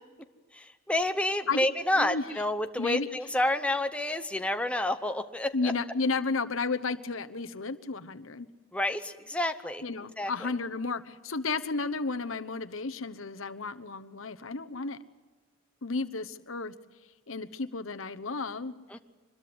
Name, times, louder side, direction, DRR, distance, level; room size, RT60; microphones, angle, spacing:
voice 1, 0.5-5.7 8.7-9.8 10.2-10.5 18.9-19.0, left 1 dB, 5° left, 7 dB, 0.8 m, -29 dB
voice 2, 1.9-2.2 2.8-3.1 5.5-8.5 9.8-15.0 15.8-16.7 17.3-18.7, left 4 dB, 75° left, 10 dB, 1.1 m, -32 dB
25.0 x 21.0 x 7.9 m, 1.3 s
head